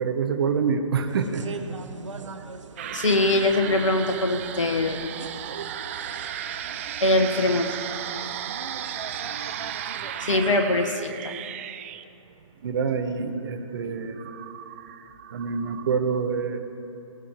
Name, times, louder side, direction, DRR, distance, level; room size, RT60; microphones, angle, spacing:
voice 1, 0.0-1.4 5.5-5.7 12.6-14.3 15.3-16.6, right 6 dB, 45° right, 7 dB, 1.1 m, -26 dB
sound 1, 1.1-10.6, right 4 dB, 60° right, 1.0 m, -42 dB
sound 2, 2.8-15.9, right 10 dB, 25° right, 0.4 m, -36 dB
voice 2, 2.9-5.1 7.0-7.7 10.2-11.3, left 2 dB, 65° left, 3 dB, 1.6 m, -22 dB
20.5 x 16.5 x 3.2 m, 2.8 s
figure-of-eight pair, 130°, 18 cm